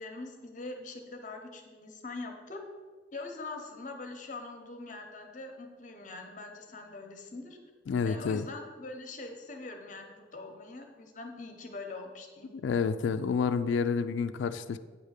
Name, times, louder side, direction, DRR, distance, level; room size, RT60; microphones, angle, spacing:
voice 1, 0.0-2.6 3.1-7.6 8.0-12.5, left 3 dB, 40° left, 4 dB, 0.9 m, -43 dB
voice 2, 7.9-8.4 12.5-14.8, left 5 dB, 75° left, 10 dB, 0.3 m, -29 dB
8.8 x 3.4 x 6.5 m, 1.5 s
head